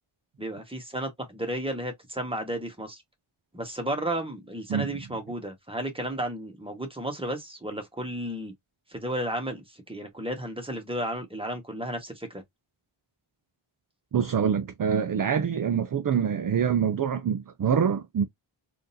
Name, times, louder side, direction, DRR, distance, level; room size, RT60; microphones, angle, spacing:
voice 1, 0.4-3.0 3.5-8.5 8.9-12.4, right 1 dB, 10° right, 1.2 m, -33 dB
voice 2, 14.1-18.2, right 7 dB, 45° right, 0.4 m, -25 dB
3.8 x 2.6 x 2.6 m
wide cardioid pair, 85°, 49 cm